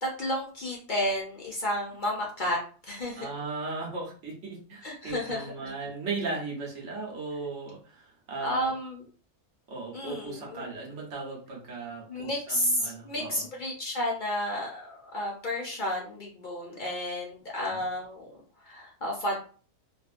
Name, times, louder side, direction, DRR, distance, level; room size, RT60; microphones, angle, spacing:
voice 1, 0.0-2.6 2.9-3.3 4.8-5.7 8.4-9.0 9.9-10.6 12.1-18.3 18.6-19.4, left 1 dB, 55° left, -2 dB, 0.5 m, -32 dB
voice 2, 3.1-8.7 9.7-13.4 17.6-17.8, right 3 dB, 60° right, -1 dB, 1.0 m, -37 dB
2.9 x 2.4 x 2.4 m, 0.41 s
omnidirectional pair, 1.5 m